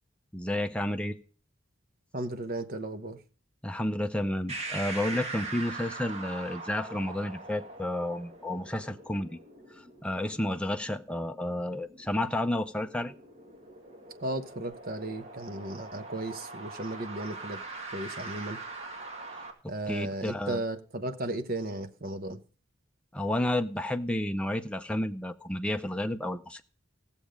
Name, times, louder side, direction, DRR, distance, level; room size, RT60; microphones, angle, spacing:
voice 1, 0.3-1.2 3.6-9.4 9.7-13.1 19.6-20.6 23.1-26.6, left 1 dB, 5° left, 0.6 m, -31 dB
voice 2, 2.1-3.2 14.2-17.6 17.9-18.6 19.7-22.4, right 1 dB, 45° right, 1.1 m, -35 dB
sound 1, 4.5-19.5, right 3 dB, 30° right, 2.0 m, -42 dB
16.5 x 7.2 x 5.1 m
head